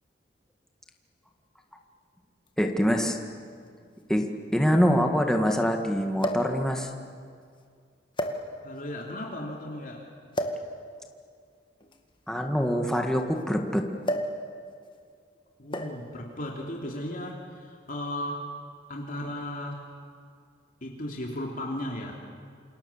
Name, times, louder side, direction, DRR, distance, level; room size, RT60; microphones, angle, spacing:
sound 1, 2.5-2.6 3.7-3.8 4.0-4.1 6.2-6.6 7.4-7.6 8.1-8.8 10.3-10.7 11.8-13.4 14.0-14.4 14.7-15.0 15.7-16.1 17.1-17.3, equal, 25° left, 2.1 m, -32 dB
voice 1, 2.6-3.2 4.1-6.9 12.3-13.9, equal, 5° left, 3 dB, 1.9 m, -24 dB
voice 2, 8.6-10.1 15.6-18.5 18.9-19.9 20.8-22.2, left 1 dB, 50° left, 0 dB, 3.1 m, -35 dB
28.5 x 27.0 x 7.4 m, 2.2 s
head